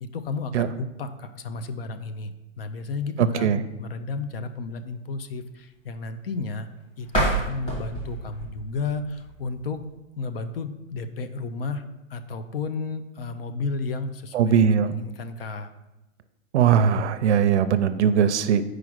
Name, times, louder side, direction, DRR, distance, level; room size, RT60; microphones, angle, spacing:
voice 1, 0.0-2.3 2.6-6.7 7.0-9.8 10.2-11.8 12.1-14.5 14.8-15.7, left 4 dB, 50° left, 10 dB, 0.5 m, -32 dB
voice 2, 3.2-3.6 14.3-14.9 16.5-18.6, right 7 dB, 60° right, 11 dB, 0.6 m, -20 dB
sound 1, 7.0-9.9, right 2 dB, 15° left, 1.4 m, -29 dB
4.9 x 4.9 x 6.1 m, 0.98 s
hypercardioid pair, 175°, 38 cm